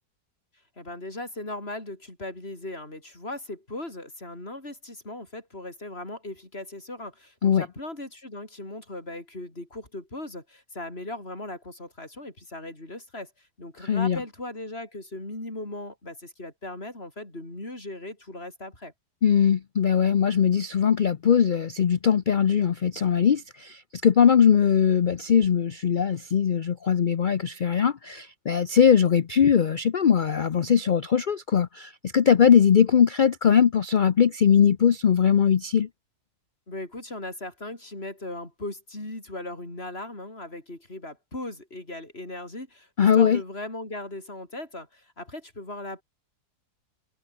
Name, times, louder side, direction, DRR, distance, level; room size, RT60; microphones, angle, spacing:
voice 1, 0.8-18.9 36.7-46.0, left 2 dB, 35° left, 6.9 m, -38 dB
voice 2, 13.8-14.2 19.2-35.9 43.0-43.4, left 7 dB, 60° left, 0.5 m, -21 dB
omnidirectional pair, 1.7 m